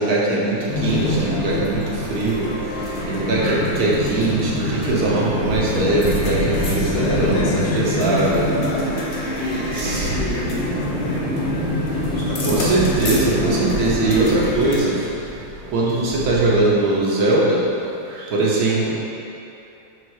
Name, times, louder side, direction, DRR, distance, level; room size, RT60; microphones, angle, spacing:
voice 1, 0.0-2.5 2.7-8.4 9.7-10.1 12.2-14.9 15.7-17.6 18.1-18.9, right 2 dB, 55° right, -5 dB, 1.3 m, -21 dB
sound 1, 0.6-16.6, right 4 dB, 75° right, 1.3 m, -34 dB
sound 2, 0.7-14.8, left 1 dB, 45° left, 0.9 m, -25 dB
voice 2, 6.8-11.7 12.1-12.8 14.9-15.1, left 1 dB, 80° left, -4 dB, 1.8 m, -28 dB
6.4 x 3.8 x 4.7 m, 2.8 s
omnidirectional pair, 2.2 m